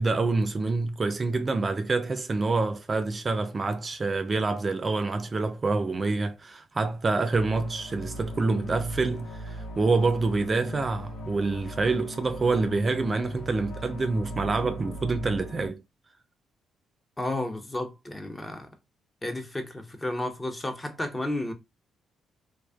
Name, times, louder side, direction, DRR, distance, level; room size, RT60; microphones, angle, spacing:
voice 1, 0.0-15.8, right 3 dB, 40° right, 0.4 m, -27 dB
sound 1, 7.3-15.7, equal, 75° left, 0.9 m, -39 dB
voice 2, 17.2-18.7 19.2-21.5, left 1 dB, 25° left, 0.8 m, -32 dB
2.4 x 2.4 x 2.3 m
hypercardioid pair, 50°, 0 cm